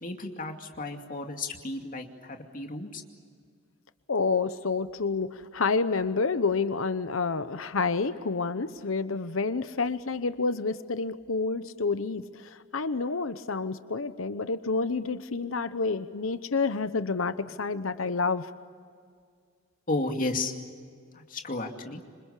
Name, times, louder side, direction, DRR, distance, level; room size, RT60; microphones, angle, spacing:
voice 1, 0.0-3.0 19.9-20.5 21.1-22.0, left 2 dB, 45° left, 4 dB, 2.5 m, -33 dB
voice 2, 4.1-18.5, left 4 dB, 85° left, 12 dB, 0.9 m, -29 dB
27.0 x 26.0 x 8.3 m, 2.1 s
head